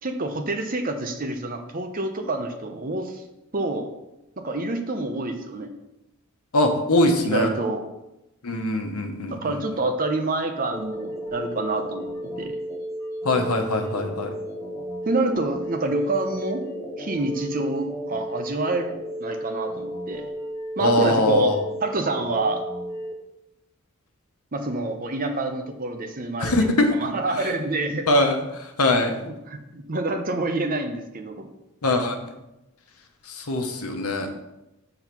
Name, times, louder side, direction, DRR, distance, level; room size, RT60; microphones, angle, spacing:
voice 1, 0.0-3.2 3.5-3.9 4.4-5.7 7.2-7.8 9.3-12.1 12.4-12.6 15.0-16.6 17.0-18.9 19.2-20.3 20.8-21.5 21.8-22.6 24.5-28.1 29.2-31.5, right 2 dB, 40° right, 5 dB, 0.8 m, -27 dB
voice 2, 6.5-7.5 8.4-9.5 13.2-14.3 20.8-21.6 26.4-26.9 28.1-29.2 31.8-32.1 33.3-34.3, left 1 dB, 80° left, 4 dB, 1.1 m, -22 dB
sound 1, 10.7-23.1, equal, 15° left, 0.8 m, -33 dB
7.1 x 3.9 x 6.0 m, 0.92 s
head